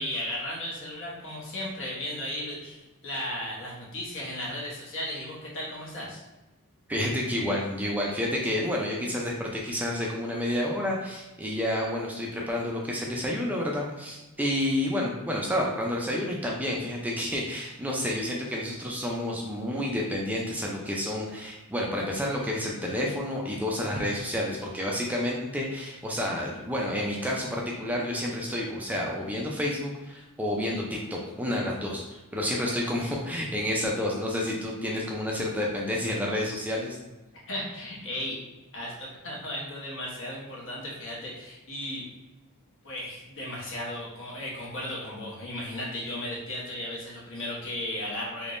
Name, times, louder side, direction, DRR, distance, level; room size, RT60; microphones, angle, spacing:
voice 1, 0.0-6.2 37.4-38.4 38.7-42.0 42.8-48.6, left 1 dB, 60° left, -4 dB, 1.2 m, -35 dB
voice 2, 6.9-37.0, left 1 dB, 5° right, -2 dB, 0.4 m, -30 dB
3.4 x 3.1 x 2.5 m, 1.1 s
head